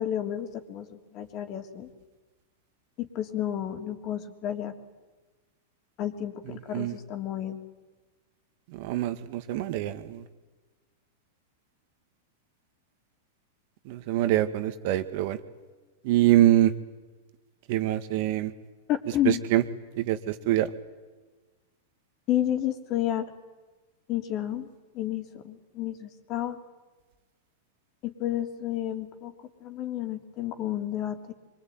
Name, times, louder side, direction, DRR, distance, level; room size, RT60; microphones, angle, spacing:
voice 1, 0.0-1.9 3.0-4.8 6.0-7.6 18.9-19.4 22.3-23.3 24.1-24.7 24.9-26.6 28.0-31.3, left 12 dB, 40° left, 6 dB, 3.5 m, -31 dB
voice 2, 8.7-10.2 13.9-15.4 16.0-16.7 17.7-18.5 19.3-19.6 20.0-20.7, right 13 dB, 55° right, 10 dB, 2.0 m, -24 dB
25.0 x 24.0 x 9.5 m, 1.3 s
hypercardioid pair, 105°, 0 cm